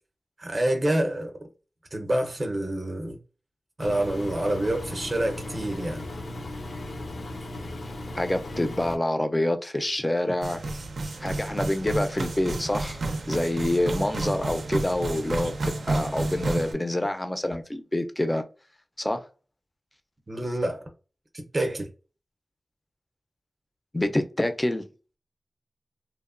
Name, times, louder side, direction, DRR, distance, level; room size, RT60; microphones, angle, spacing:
voice 1, 0.4-1.3 1.9-3.2 3.8-6.0 20.3-20.8 21.3-21.9, right 1 dB, 35° right, 0.6 m, -27 dB
Engine, 3.8-9.0, left 1 dB, 75° left, 0.5 m, -37 dB
voice 2, 8.1-10.6 11.2-13.0 13.3-18.4 19.0-19.2 23.9-24.8, left 1 dB, 15° left, 0.4 m, -27 dB
sound 1, 10.4-16.7, right 2 dB, 90° right, 0.5 m, -30 dB
2.9 x 2.1 x 2.4 m
wide cardioid pair, 90°, 0 cm